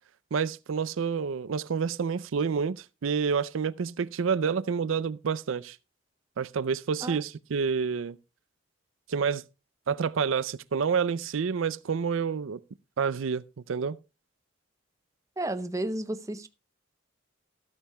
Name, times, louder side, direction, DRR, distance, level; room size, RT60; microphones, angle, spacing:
voice 1, 0.3-5.8 6.4-8.2 9.1-9.4 9.9-12.6 13.0-14.0, right 6 dB, 75° right, 0.4 m, -28 dB
voice 2, 15.4-16.5, right 1 dB, 15° right, 0.7 m, -32 dB
14.5 x 13.0 x 2.2 m
head